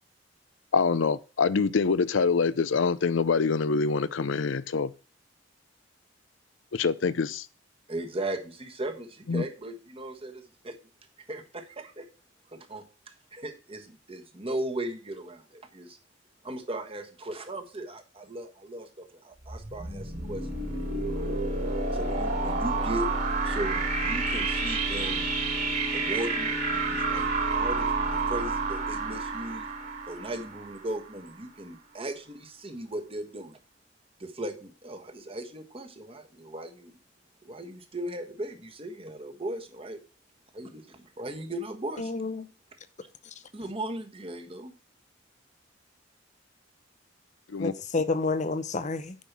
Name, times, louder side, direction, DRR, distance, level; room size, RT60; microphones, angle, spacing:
voice 1, 0.7-4.9 6.7-7.5 9.3-9.4 47.5-47.7, left 5 dB, 85° left, 0.5 m, -25 dB
voice 2, 7.9-10.7 11.3-12.1 12.5-12.8 13.3-16.0 16.4-20.5 20.7-21.3 21.9-23.1 23.4-25.3 25.9-29.7 30.1-33.6 34.2-36.9 37.4-40.0 40.5-42.1 43.5-44.7, right 1 dB, 30° right, 1.4 m, -37 dB
sound 1, 19.5-31.2, right 3 dB, 50° right, 3.5 m, -29 dB
voice 3, 42.0-42.5 47.6-49.2, left 3 dB, 40° left, 0.7 m, -29 dB
8.6 x 5.5 x 6.0 m
head